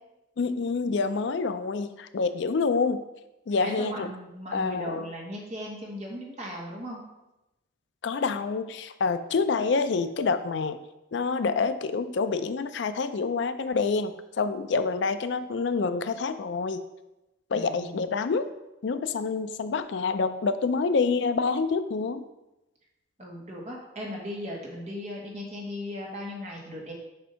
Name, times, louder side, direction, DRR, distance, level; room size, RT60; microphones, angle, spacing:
voice 1, 0.4-3.0 3.5-4.1 4.5-5.1 8.0-10.8 11.1-16.8 17.5-18.5 18.8-22.2, left 4 dB, 65° left, 10 dB, 0.4 m, -27 dB
voice 2, 3.6-7.0 17.5-18.0 23.2-26.9, equal, 35° right, -2 dB, 1.3 m, -37 dB
6.8 x 2.7 x 5.5 m, 0.97 s
head